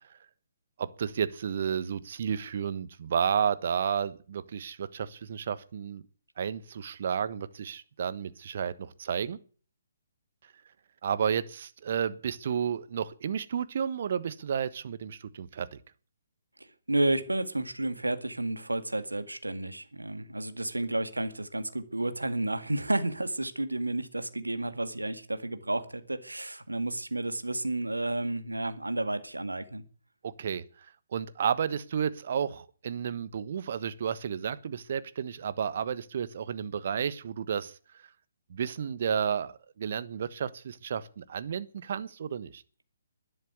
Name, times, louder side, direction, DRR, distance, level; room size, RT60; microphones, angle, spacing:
voice 1, 0.8-6.0 6.4-9.4 11.0-15.8 30.2-30.6 31.1-37.8 38.5-42.6, right 7 dB, 50° right, 15 dB, 1.2 m, -32 dB
voice 2, 16.9-29.8, right 2 dB, 80° right, 11 dB, 1.9 m, -31 dB
12.5 x 10.5 x 9.6 m, 0.42 s
figure-of-eight pair, 135°, 0 cm